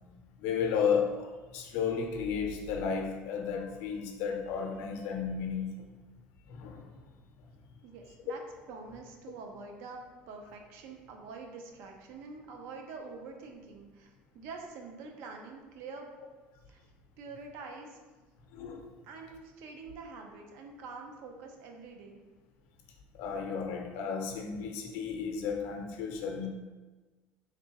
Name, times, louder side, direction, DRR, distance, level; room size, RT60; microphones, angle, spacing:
voice 1, 0.4-5.9 6.5-6.9 18.5-18.9 23.1-26.5, left 6 dB, 75° left, 3 dB, 0.6 m, -33 dB
voice 2, 7.8-8.4 8.7-14.1 14.3-16.1 16.7-16.8 17.2-18.0 19.0-22.2, right 4 dB, 70° right, 2 dB, 0.6 m, -46 dB
3.8 x 3.3 x 2.9 m, 1.3 s
cardioid pair, 140°, 4 cm